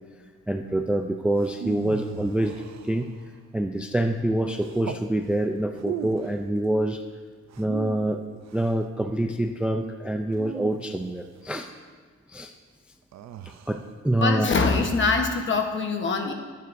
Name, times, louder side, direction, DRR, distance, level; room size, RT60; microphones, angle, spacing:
voice 1, 0.5-2.5 2.8-3.1 3.5-7.0 7.6-8.2 8.5-11.7 12.3-12.5 13.7-14.5, right 1 dB, 5° right, 5 dB, 0.3 m, -26 dB
sound 1, 1.4-3.4 4.6-5.1 5.7-6.4 7.5-8.8 10.3-11.5 13.1-13.9, right 9 dB, 65° right, 0.5 m, -38 dB
voice 2, 14.2-16.3, left 4 dB, 40° left, 4 dB, 1.1 m, -23 dB
21.5 x 9.4 x 2.6 m, 1.5 s
wide cardioid pair, 170°, 29 cm